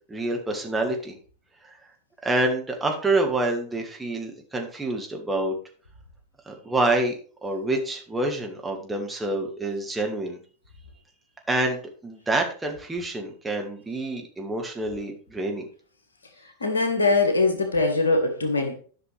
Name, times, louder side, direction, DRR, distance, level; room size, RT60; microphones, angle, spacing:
voice 1, 0.1-1.2 1.6-1.8 2.2-5.5 6.5-7.1 7.4-10.4 11.5-15.6, right 2 dB, 10° right, 1.7 m, -27 dB
voice 2, 16.6-18.7, left 3 dB, 75° left, 1.7 m, -22 dB
11.0 x 6.0 x 3.4 m
figure-of-eight pair, 90°, 0 cm